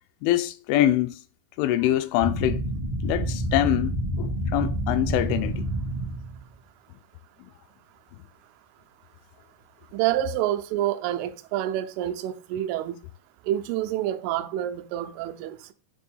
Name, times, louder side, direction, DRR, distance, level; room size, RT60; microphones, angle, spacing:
voice 1, 0.2-1.1 1.6-2.6 3.0-5.6, left 13 dB, 85° left, 3.0 m, -24 dB
sound 1, 2.2-6.4, right 1 dB, 35° right, 0.6 m, -28 dB
voice 2, 9.9-13.0 13.4-15.7, right 12 dB, 90° right, 3.1 m, -28 dB
8.8 x 3.4 x 5.3 m
omnidirectional pair, 5.5 m